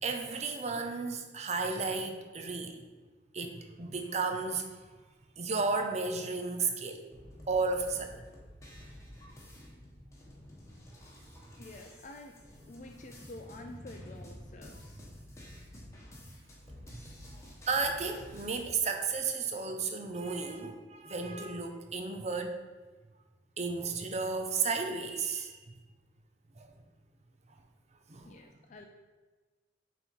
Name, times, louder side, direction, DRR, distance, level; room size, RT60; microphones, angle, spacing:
voice 1, 0.0-2.8 3.3-4.8 5.4-7.1 7.5-8.3 16.8-17.4 17.7-22.5 23.6-25.5 26.6-26.7 28.1-28.3, right 4 dB, 35° right, 5 dB, 0.6 m, -33 dB
sound 1, 7.1-18.7, left 1 dB, 15° left, 1.3 m, -50 dB
voice 2, 11.6-12.3 12.7-15.0 28.2-28.8, left 2 dB, 40° left, 3 dB, 0.5 m, -49 dB
6.8 x 4.2 x 4.6 m, 1.3 s
head